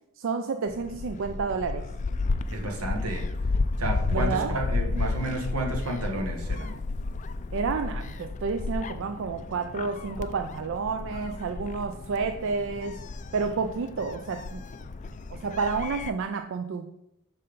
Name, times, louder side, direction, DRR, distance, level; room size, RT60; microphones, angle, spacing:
voice 1, 0.2-1.8 4.1-4.6 7.5-13.0 13.3-14.6 15.3-16.9, right 4 dB, 60° right, 7 dB, 0.4 m, -30 dB
Gull seagull, 0.7-16.1, left 3 dB, 35° left, 0.3 m, -32 dB
voice 2, 2.5-3.2 3.8-6.8, right 1 dB, 90° right, 1 dB, 1.4 m, -31 dB
6.4 x 4.2 x 5.2 m, 0.82 s
head